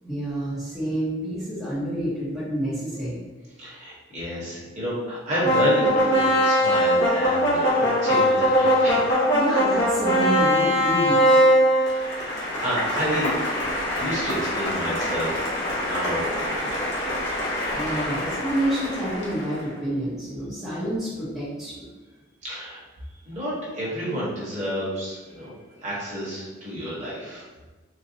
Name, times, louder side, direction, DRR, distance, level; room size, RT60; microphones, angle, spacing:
voice 1, 0.0-3.2 9.3-11.4 17.7-21.8, equal, ahead, -11 dB, 0.7 m, -28 dB
voice 2, 3.6-9.0 11.9-13.3 14.0-15.4 15.7-17.0 22.4-22.8 23.3-25.5 25.8-27.4, equal, 35° right, -8 dB, 1.1 m, -30 dB
sound 1, 5.4-19.6, equal, 55° left, 1.0 m, -22 dB
4.0 x 2.2 x 2.7 m, 1.2 s
head